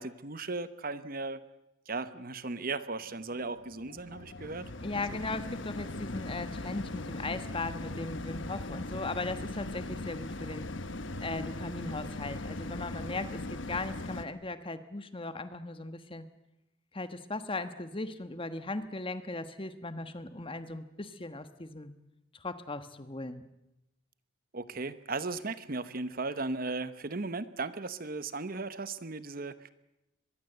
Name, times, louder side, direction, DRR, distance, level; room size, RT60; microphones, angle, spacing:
voice 1, 0.0-1.4 1.9-4.7 5.1-5.2 24.5-29.7, right 3 dB, 45° right, 13 dB, 1.0 m, -36 dB
sound 1, 3.0-14.3, left 2 dB, 60° left, 1.2 m, -39 dB
voice 2, 4.8-10.7 11.2-16.2 16.9-21.9 22.3-23.4, left 2 dB, 25° left, 10 dB, 1.3 m, -38 dB
24.0 x 21.5 x 8.0 m, 0.93 s
head